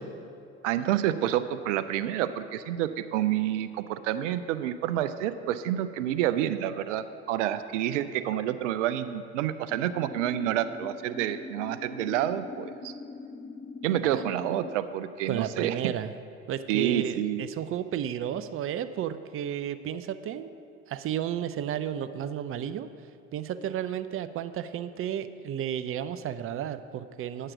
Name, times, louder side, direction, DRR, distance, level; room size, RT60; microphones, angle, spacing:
voice 1, 0.6-12.9 13.8-15.9 16.7-17.4, right 11 dB, 85° right, 12 dB, 0.5 m, -28 dB
sound 1, 9.7-14.7, left 3 dB, 20° left, 1.0 m, -42 dB
voice 2, 15.3-16.1 16.5-20.5 20.9-22.9 23.3-27.5, right 10 dB, 40° right, 12 dB, 0.5 m, -32 dB
8.9 x 6.6 x 6.0 m, 2.5 s
hypercardioid pair, 70°, 36 cm